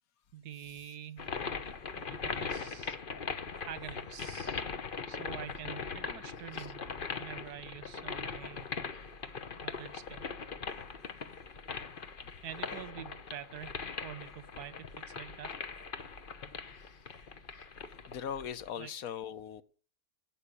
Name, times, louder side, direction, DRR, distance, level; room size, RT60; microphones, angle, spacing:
voice 1, 0.3-1.3 1.9-3.0 3.7-4.6 5.1-6.9 7.2-9.2 9.6-10.2 12.4-13.7 14.0-15.5 18.8-18.9, right 10 dB, 80° right, 15 dB, 1.5 m, -46 dB
sound 1, 1.2-18.7, left 5 dB, 40° left, 1.0 m, -40 dB
voice 2, 18.1-19.6, left 8 dB, 70° left, 14 dB, 1.2 m, -39 dB
17.0 x 5.9 x 9.8 m, 0.44 s
omnidirectional pair, 1.6 m